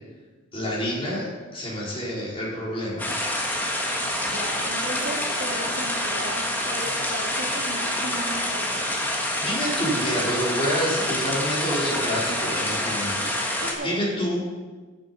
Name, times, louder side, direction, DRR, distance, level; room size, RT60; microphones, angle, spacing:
voice 1, 0.5-3.1 9.2-14.4, equal, 25° left, -5 dB, 3.8 m, -28 dB
sound 1, 3.0-13.7, left 1 dB, 10° left, 1.5 m, -27 dB
voice 2, 4.2-8.8 13.6-14.0, right 1 dB, 55° right, -5 dB, 2.0 m, -35 dB
14.5 x 7.2 x 5.4 m, 1.3 s
head